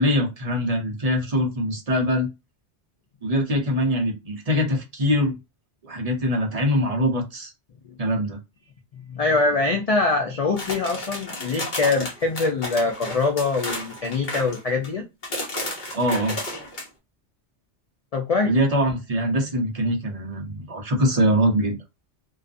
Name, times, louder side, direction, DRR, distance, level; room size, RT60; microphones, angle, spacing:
voice 1, 0.0-2.3 3.2-5.4 5.8-7.5 8.0-8.4 15.9-16.4 18.4-21.8, equal, 40° right, 0.6 m, -23 dB
voice 2, 9.1-15.0 18.1-18.5, left 3 dB, 65° left, 0.3 m, -23 dB
sound 1, 10.6-14.9 15.2-16.9, left 1 dB, 45° left, 1.0 m, -32 dB
2.5 x 2.3 x 2.5 m
omnidirectional pair, 1.2 m